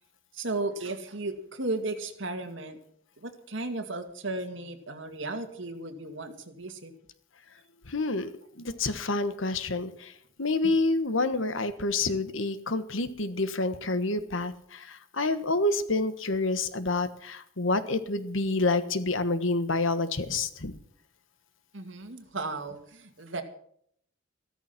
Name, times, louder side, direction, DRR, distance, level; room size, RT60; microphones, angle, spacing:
voice 1, 0.3-2.8 3.2-6.9 10.6-10.7 21.7-23.4, right 2 dB, 65° right, 7 dB, 2.2 m, -35 dB
voice 2, 7.9-8.3 8.6-10.1 10.4-20.7, left 2 dB, 70° left, 12 dB, 1.3 m, -28 dB
14.5 x 13.5 x 5.9 m, 0.65 s
head